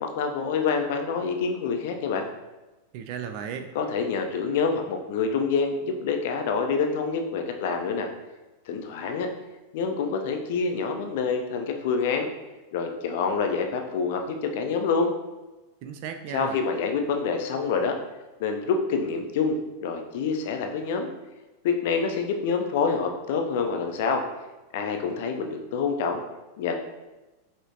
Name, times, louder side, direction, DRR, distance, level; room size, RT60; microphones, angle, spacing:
voice 1, 0.0-2.3 3.7-8.1 8.7-9.3 9.7-12.3 12.7-15.1 16.3-18.0 18.4-21.1 21.6-24.2 24.7-26.2 26.6-26.8, left 5 dB, 50° left, 4 dB, 0.4 m, -27 dB
voice 2, 2.9-3.7 15.8-16.6, right 7 dB, 45° right, 6 dB, 0.3 m, -35 dB
5.4 x 2.9 x 2.7 m, 1.1 s
figure-of-eight pair, 90°, 0 cm